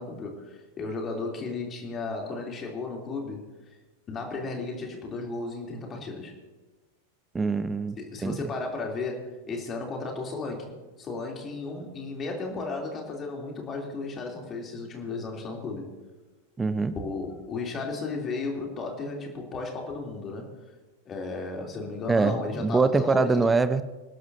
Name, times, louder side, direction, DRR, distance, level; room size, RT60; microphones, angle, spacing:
voice 1, 0.0-3.4 4.1-6.3 8.0-15.9 16.9-20.5 21.0-23.4, left 3 dB, 25° left, 0 dB, 3.4 m, -34 dB
voice 2, 7.3-8.0 8.2-8.5 16.6-16.9 22.1-23.8, right 4 dB, 15° right, 13 dB, 0.6 m, -24 dB
27.5 x 12.0 x 2.9 m, 1.2 s
figure-of-eight pair, 90°, 0 cm